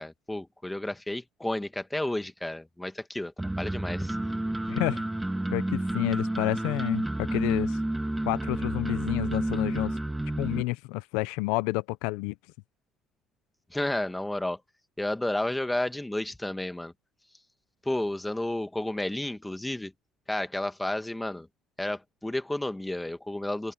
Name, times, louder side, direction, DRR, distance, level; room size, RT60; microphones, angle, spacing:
voice 1, 0.0-4.2 13.7-14.6 15.0-16.9 17.9-19.9 20.3-21.5 21.8-23.7, left 1 dB, 10° left, 1.8 m, -31 dB
sound 1, 3.4-10.6, right 1 dB, 10° right, 1.9 m, -30 dB
voice 2, 4.7-5.0 5.5-7.8 8.3-10.0 10.4-12.3, left 22 dB, 90° left, 0.6 m, -30 dB
open air
supercardioid pair, 90°, 0 cm